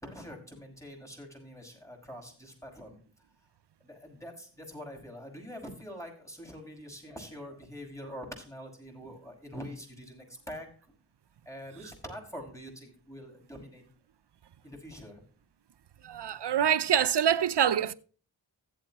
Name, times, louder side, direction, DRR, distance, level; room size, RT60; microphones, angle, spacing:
voice 1, 0.0-3.0 3.8-10.7 11.5-13.8 14.6-15.2, equal, 5° left, 6.0 m, -44 dB
voice 2, 16.0-17.9, right 9 dB, 70° right, 0.7 m, -25 dB
16.0 x 8.4 x 3.0 m
cardioid pair, 45°, 43 cm